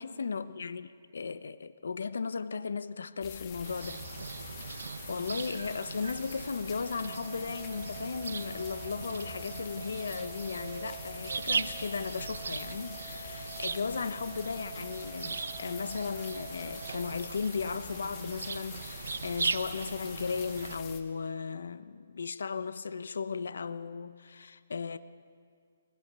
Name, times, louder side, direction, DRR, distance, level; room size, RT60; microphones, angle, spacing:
voice 1, 0.0-4.0 4.6-25.0, left 5 dB, 80° left, 1.0 m, -36 dB
sound 1, 3.2-21.0, left 8 dB, 25° left, 1.7 m, -47 dB
sound 2, 3.6-20.8, right 4 dB, 85° right, 0.9 m, -39 dB
sound 3, 6.9-16.9, right 3 dB, 60° right, 5.3 m, -48 dB
24.0 x 21.0 x 6.9 m
hypercardioid pair, 160°, 0 cm